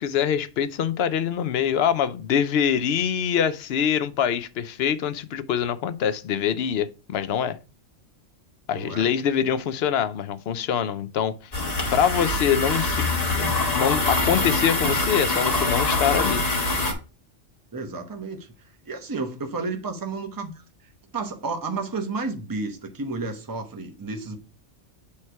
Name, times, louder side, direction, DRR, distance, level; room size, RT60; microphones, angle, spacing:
voice 1, 0.0-7.6 8.7-11.4 11.9-13.1 13.7-16.4, left 8 dB, 60° left, 0.8 m, -24 dB
voice 2, 8.7-9.1 17.7-18.5 18.8-24.4, right 3 dB, 20° right, 0.8 m, -32 dB
sound 1, 11.5-16.9, left 2 dB, 30° left, 1.5 m, -24 dB
8.5 x 3.2 x 4.5 m
omnidirectional pair, 1.3 m